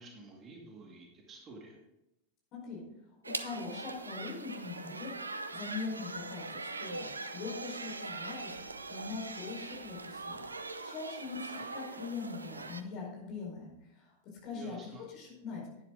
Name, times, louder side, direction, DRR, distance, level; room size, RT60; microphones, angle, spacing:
voice 1, 0.0-1.8 11.4-11.6 14.5-15.0, right 3 dB, 25° right, 0 dB, 2.3 m, -50 dB
voice 2, 2.5-2.8 3.2-5.1 5.5-7.1 7.3-8.5 8.9-10.4 10.8-14.1 14.4-15.6, left 4 dB, 40° left, -2 dB, 4.8 m, -42 dB
sound 1, 3.2-12.8, right 3 dB, 80° right, 0.7 m, -42 dB
11.5 x 9.9 x 3.9 m, 0.89 s
figure-of-eight pair, 90°, 0 cm